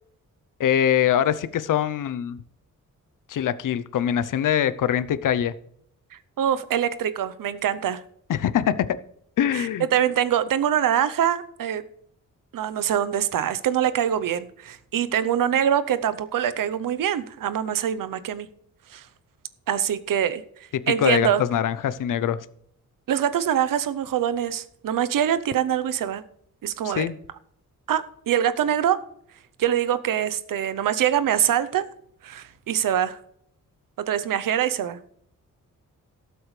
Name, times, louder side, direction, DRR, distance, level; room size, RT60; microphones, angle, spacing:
voice 1, 0.6-2.4 3.3-5.5 8.3-8.9 9.4-9.9 20.9-22.4 26.8-27.1, left 10 dB, 75° left, 0.7 m, -23 dB
voice 2, 6.4-8.0 9.5-11.8 12.5-18.5 18.9-19.0 19.7-20.4 20.9-21.4 23.1-26.2 26.6-27.1 27.9-29.0 29.6-31.9 32.2-33.2 34.1-35.0, right 10 dB, 85° right, 0.8 m, -24 dB
18.0 x 7.8 x 3.3 m
wide cardioid pair, 175°, 32 cm